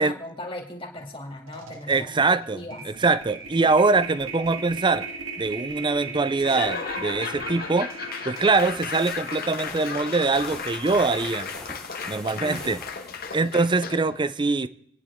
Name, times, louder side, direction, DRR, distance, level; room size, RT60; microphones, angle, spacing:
voice 1, 0.0-2.1 2.5-2.8 12.3-12.8, left 1 dB, 25° left, 2.4 m, -38 dB
sound 1, 1.0-1.1 1.4-11.7, right 4 dB, 75° right, 1.8 m, -39 dB
voice 2, 1.9-5.1 5.4-7.9 8.2-11.5 12.1-12.8 13.3-14.7, right 3 dB, 25° right, 0.5 m, -23 dB
Laughter / Applause / Crowd, 6.4-14.1, left 5 dB, 50° left, 1.2 m, -34 dB
sound 2, 8.3-13.7, left 1 dB, 5° left, 2.0 m, -45 dB
27.5 x 9.9 x 3.6 m
head